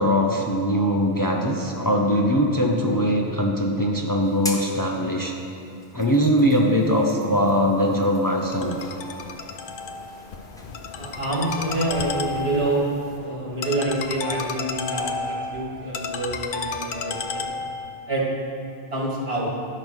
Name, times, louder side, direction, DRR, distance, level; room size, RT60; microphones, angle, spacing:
voice 1, 0.0-5.3 5.9-8.8, equal, 25° left, 0 dB, 0.6 m, -21 dB
sound 1, 4.2-13.2, equal, 5° left, 0.9 m, -43 dB
Ringtone, 8.4-18.0, left 4 dB, 60° left, 0.7 m, -32 dB
voice 2, 11.0-12.9 13.2-17.5 18.1-18.3 18.9-19.5, right 2 dB, 80° right, -4 dB, 2.1 m, -27 dB
10.5 x 5.3 x 6.2 m, 2.8 s
omnidirectional pair, 1.0 m